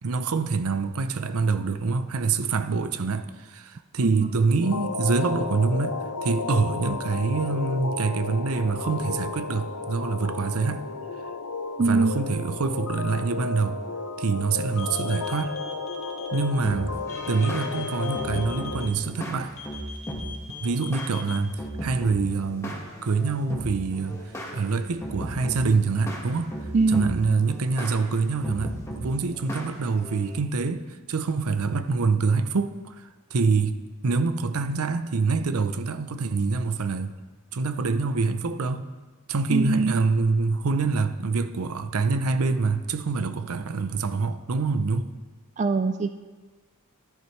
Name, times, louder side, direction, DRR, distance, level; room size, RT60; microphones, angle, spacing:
voice 1, 0.0-10.9 11.8-13.8 14.2-15.5 16.3-17.0 17.3-19.5 20.6-24.2 24.5-26.5 26.9-37.1 37.5-38.9 39.3-45.1, right 4 dB, 70° right, 0.6 m, -26 dB
voice 2, 4.0-4.4 11.8-12.2 26.7-27.2 39.5-40.0 45.6-46.1, right 3 dB, 30° right, 0.3 m, -23 dB
sound 1, 4.6-18.9, left 4 dB, 80° left, 0.7 m, -33 dB
sound 2, 14.8-16.4 17.1-18.9 19.6-21.4, left 6 dB, 65° left, 1.4 m, -41 dB
sound 3, 16.6-30.4, equal, 15° left, 1.5 m, -37 dB
13.5 x 10.5 x 3.2 m
head